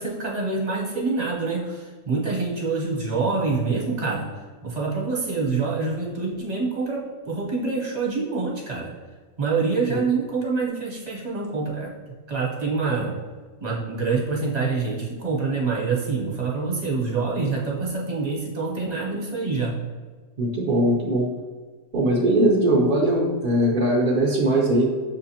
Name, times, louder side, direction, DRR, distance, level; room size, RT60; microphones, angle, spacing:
voice 1, 0.0-4.2 4.6-8.9 9.4-11.9 12.3-13.1 13.6-19.7, right 4 dB, 35° right, -3 dB, 1.0 m, -26 dB
voice 2, 20.4-21.3 21.9-24.8, right 1 dB, 50° right, -4 dB, 0.6 m, -20 dB
7.0 x 2.4 x 2.8 m, 1.4 s
omnidirectional pair, 1.3 m